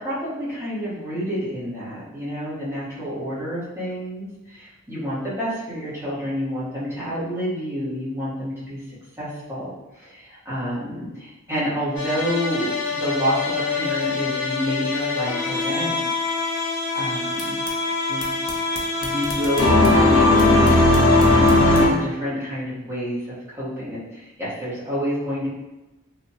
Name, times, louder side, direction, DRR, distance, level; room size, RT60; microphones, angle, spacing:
voice 1, 0.0-4.3 4.9-8.8 9.2-16.0 16.9-17.6 18.1-18.2 19.0-21.1 21.4-25.5, equal, 15° right, -11 dB, 1.0 m, -28 dB
sound 1, 12.0-21.9, left 2 dB, 80° left, 0.6 m, -20 dB
3.2 x 2.1 x 2.7 m, 1.0 s
head